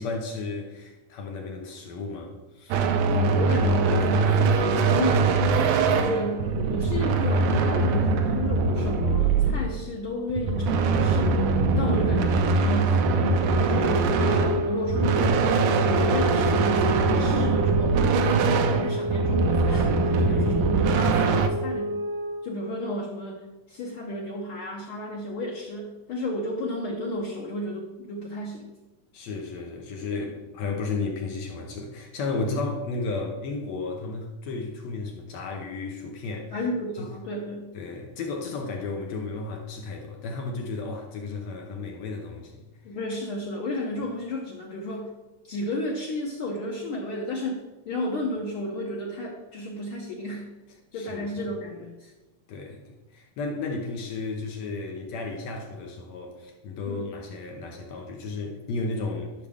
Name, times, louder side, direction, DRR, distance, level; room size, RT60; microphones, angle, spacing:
voice 1, 0.0-2.8 20.1-20.7 29.1-36.6 37.0-37.1 37.7-42.7 50.9-51.4 52.5-59.3, left 3 dB, 65° left, 1 dB, 2.0 m, -33 dB
sound 1, 2.7-9.9 10.3-21.5, right 4 dB, 85° right, 2.2 m, -22 dB
voice 2, 3.1-5.5 5.9-11.4 11.8-13.0 13.6-18.0 18.3-22.0 22.4-28.6 36.5-37.7 42.8-45.1 45.4-50.5 50.9-52.1 56.9-57.1, left 1 dB, 85° left, -1 dB, 1.2 m, -32 dB
sound 2, 14.1-22.5, equal, 15° right, 1.7 m, -30 dB
12.0 x 6.1 x 3.5 m, 1.1 s
omnidirectional pair, 3.7 m